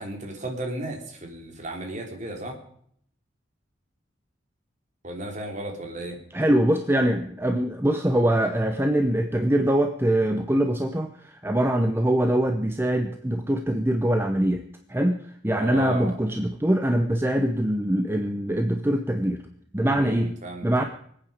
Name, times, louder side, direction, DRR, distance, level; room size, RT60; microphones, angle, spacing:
voice 1, 0.0-2.6 5.0-6.2 15.5-16.1 19.8-20.9, right 1 dB, 40° right, 2 dB, 3.4 m, -34 dB
voice 2, 6.3-14.6 14.9-19.4 19.7-20.3 20.6-20.8, right 1 dB, 10° right, 6 dB, 0.8 m, -23 dB
25.0 x 8.9 x 5.0 m, 0.65 s
head